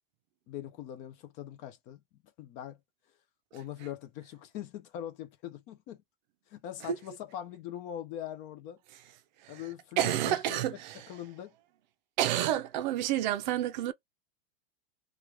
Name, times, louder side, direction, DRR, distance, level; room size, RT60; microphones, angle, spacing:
voice 1, 0.5-2.0 2.4-2.8 3.5-6.0 6.5-8.8 9.5-10.8 11.1-11.5, left 11 dB, 25° left, 0.4 m, -42 dB
voice 2, 10.0-11.1 12.2-13.9, right 12 dB, 50° right, 0.5 m, -29 dB
3.0 x 2.4 x 3.2 m
supercardioid pair, 155°, 29 cm